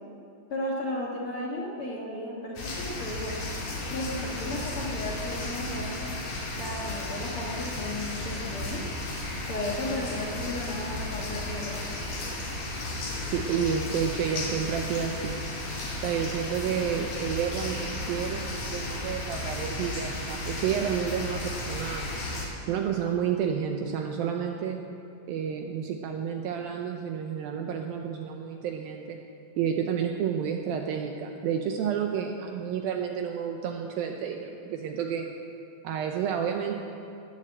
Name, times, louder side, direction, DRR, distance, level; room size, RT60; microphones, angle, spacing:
voice 1, 0.5-3.3 3.9-5.9 6.6-8.8 9.5-11.8, left 1 dB, 70° left, -4 dB, 1.3 m, -34 dB
sound 1, 2.6-22.5, left 2 dB, 50° left, 3.7 m, -34 dB
voice 2, 13.2-15.4 16.0-22.1 22.7-24.8 25.3-29.2 29.6-35.3 35.8-36.8, right 8 dB, 85° right, 3 dB, 2.1 m, -30 dB
20.5 x 7.6 x 7.8 m, 2.7 s
omnidirectional pair, 5.1 m